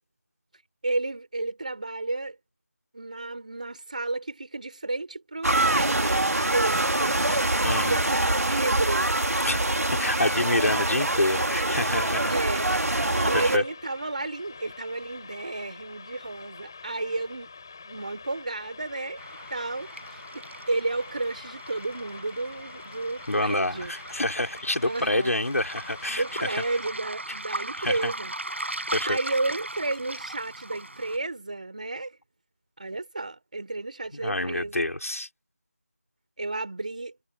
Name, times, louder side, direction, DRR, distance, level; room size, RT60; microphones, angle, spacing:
voice 1, 0.8-2.4 2.9-7.3 7.5-9.2 10.9-11.0 12.3-12.7 13.1-17.5 17.8-19.2 19.5-23.9 24.8-25.4 26.1-28.3 29.0-32.2 32.8-34.9 36.4-37.1, right 2 dB, 30° right, 4.5 m, -32 dB
sound 1, 5.4-13.6, right 2 dB, 85° right, 2.5 m, -25 dB
voice 2, 7.6-8.1 9.4-9.6 9.9-12.4 13.2-13.6 23.3-26.6 27.8-28.1 28.9-29.2 34.2-35.3, left 1 dB, 80° left, 4.9 m, -27 dB
sound 2, 8.9-26.9, left 5 dB, 15° left, 3.9 m, -46 dB
Waves surf, 19.2-31.2, right 2 dB, 55° right, 4.7 m, -38 dB
figure-of-eight pair, 180°, 8 cm